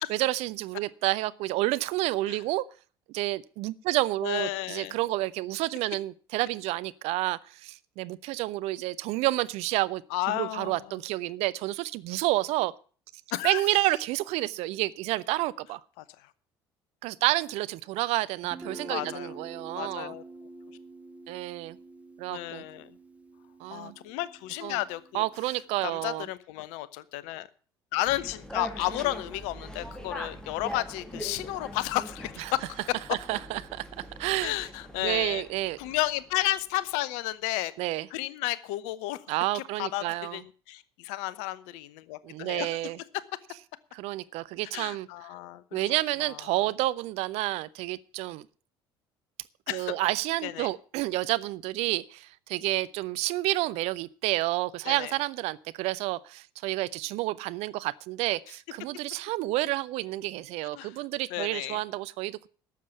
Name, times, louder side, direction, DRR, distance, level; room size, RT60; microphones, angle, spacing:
voice 1, 0.1-2.7 3.1-10.0 10.3-12.7 13.4-15.8 17.0-20.1 21.3-21.8 22.2-22.6 23.6-23.9 24.6-24.8 25.1-26.3 33.3-34.5 35.0-35.8 37.8-38.1 39.3-40.4 42.2-43.0 43.9-45.1 45.7-48.5 49.7-62.5, right 18 dB, 55° right, 0.6 m, -30 dB
voice 2, 4.2-4.9 10.1-10.8 13.3-13.6 18.9-19.3 19.8-20.2 22.3-22.9 23.7-25.3 25.8-27.5 27.9-32.6 34.4-35.4 35.8-37.7 38.1-39.2 39.5-42.7 44.7-45.9 46.2-46.4 49.7-49.9 50.4-50.7 54.9-55.1 60.7-60.9 61.3-61.8, left 16 dB, 60° left, 0.8 m, -32 dB
Guitar, 18.4-26.1, right 2 dB, 10° right, 1.7 m, -47 dB
sound 1, 28.0-36.4, equal, 5° left, 2.4 m, -42 dB
12.5 x 7.4 x 8.1 m
figure-of-eight pair, 60°, 13 cm